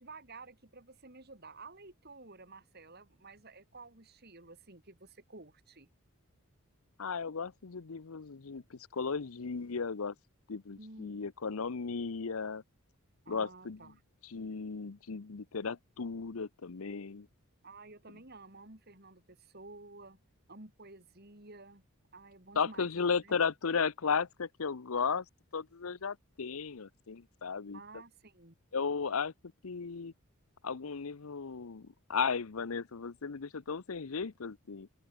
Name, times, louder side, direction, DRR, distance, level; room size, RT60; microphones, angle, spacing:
voice 1, 0.0-5.9 10.8-11.2 13.3-14.0 17.6-20.2 20.5-21.8 22.1-23.4 27.7-28.6, right 3 dB, 45° right, 3.7 m, -52 dB
voice 2, 7.0-10.1 10.5-12.6 13.3-13.8 14.2-17.3 22.6-25.2 25.5-27.8 28.7-29.3 29.6-30.1 30.6-34.9, left 5 dB, 70° left, 0.7 m, -35 dB
open air
head